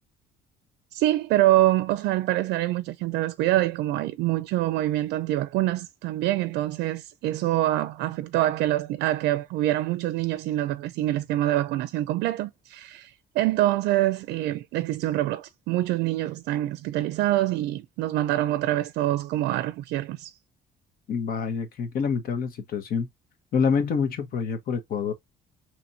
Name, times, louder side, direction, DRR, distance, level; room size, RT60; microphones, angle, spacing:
voice 1, 0.9-20.3, right 15 dB, 85° right, 0.4 m, -25 dB
voice 2, 21.1-23.1 23.5-25.1, left 6 dB, 60° left, 1.1 m, -26 dB
4.2 x 3.0 x 2.7 m
cardioid pair, 110°, 17 cm